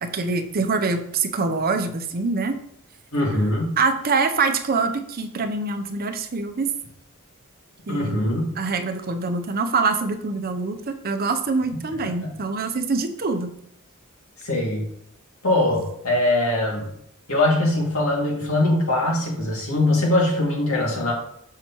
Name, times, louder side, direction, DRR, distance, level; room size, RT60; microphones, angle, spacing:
voice 1, 0.0-2.6 3.8-6.7 7.9-8.2 8.6-13.5, right 4 dB, 45° right, 6 dB, 0.6 m, -24 dB
voice 2, 3.1-3.8 7.9-8.4 12.2-12.3 14.4-14.9 15.4-16.9 17.3-21.1, left 1 dB, 75° left, -1 dB, 2.1 m, -22 dB
6.6 x 6.1 x 2.9 m, 0.73 s
head